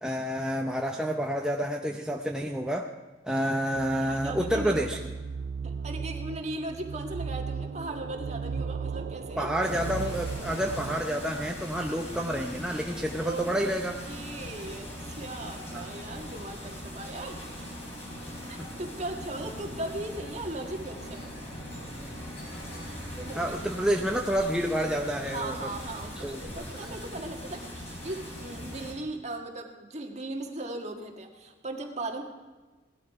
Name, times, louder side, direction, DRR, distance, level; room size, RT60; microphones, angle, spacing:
voice 1, 0.0-2.9 3.2-5.0 9.4-14.0 15.7-15.8 18.6-18.7 23.2-25.5 26.2-26.6, equal, 5° right, 1 dB, 0.7 m, -29 dB
sound 1, 3.7-11.0, right 5 dB, 55° right, 0.3 m, -36 dB
voice 2, 3.9-5.0 5.6-9.5 13.2-13.5 14.1-17.4 18.5-21.3 23.2-23.6 25.2-27.7 28.0-32.2, right 2 dB, 40° right, 3 dB, 1.7 m, -38 dB
sound 2, 9.6-28.9, equal, 35° left, 3.8 m, -41 dB
sound 3, 18.3-26.0, equal, 75° left, 5.1 m, -48 dB
18.0 x 12.0 x 4.7 m, 1.3 s
head